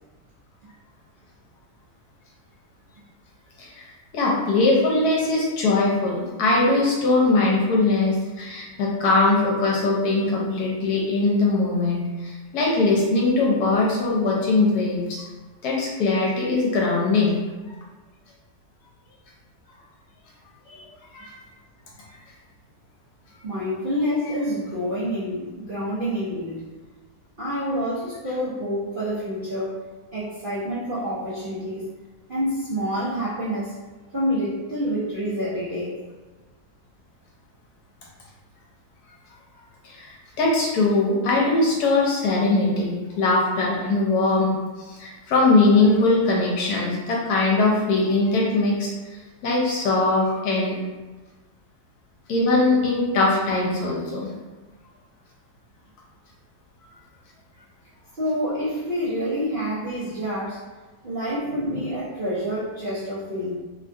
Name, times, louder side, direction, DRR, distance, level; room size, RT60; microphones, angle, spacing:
voice 1, 4.1-15.3 15.6-17.4 21.1-21.3 39.8-44.5 44.9-48.9 49.4-50.8 52.3-54.3 61.8-61.9, left 2 dB, 70° left, -3 dB, 1.1 m, -21 dB
voice 2, 23.4-26.6 27.4-29.8 30.1-31.9 32.3-33.8 34.1-36.0 58.1-60.6 61.0-63.5, equal, 55° right, -11 dB, 0.5 m, -27 dB
3.0 x 2.3 x 2.5 m, 1.3 s
omnidirectional pair, 1.9 m